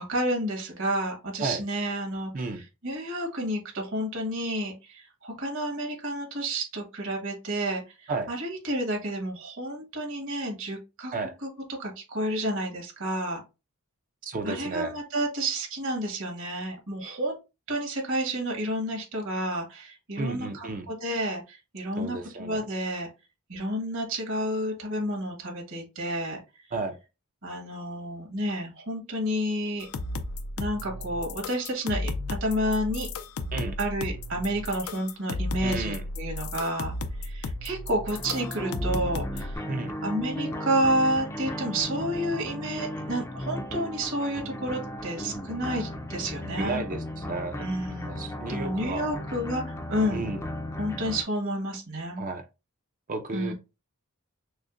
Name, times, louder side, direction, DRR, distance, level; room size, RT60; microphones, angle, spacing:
voice 1, 0.0-11.1 11.4-11.5 11.8-13.4 14.4-17.4 17.7-23.1 23.5-26.4 27.4-29.9 30.6-33.1 33.8-36.9 37.2-39.6 40.0-46.8 47.6-50.2 50.8-52.3 53.3-53.5, right 1 dB, 60° right, 1.5 m, -30 dB
voice 2, 14.2-14.9 20.2-20.9 22.0-22.6 26.7-27.0 33.5-33.8 35.6-36.0 39.7-39.9 46.6-47.7 48.1-49.1 50.1-50.4 52.2-52.4 53.1-53.5, right 3 dB, 40° right, 0.5 m, -32 dB
sound 1, 29.8-39.5, left 2 dB, 80° left, 0.5 m, -34 dB
sound 2, 38.1-51.2, left 1 dB, 15° left, 0.4 m, -36 dB
6.2 x 2.1 x 2.5 m
head